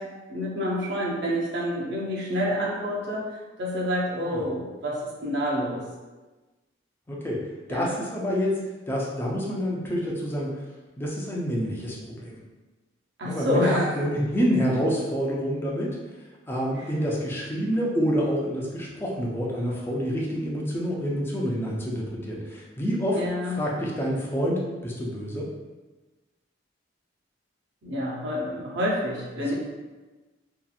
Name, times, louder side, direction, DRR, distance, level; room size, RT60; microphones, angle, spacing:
voice 1, 0.0-3.3 3.6-5.8 7.7-7.9 13.2-14.0 23.1-23.7 27.8-29.5, equal, 60° right, -4 dB, 0.6 m, -28 dB
voice 2, 7.1-7.4 7.7-8.5 8.9-10.5 11.0-12.4 13.2-16.0 16.5-25.5 29.4-29.5, equal, 10° left, -4 dB, 0.4 m, -27 dB
2.8 x 2.4 x 2.3 m, 1.2 s
head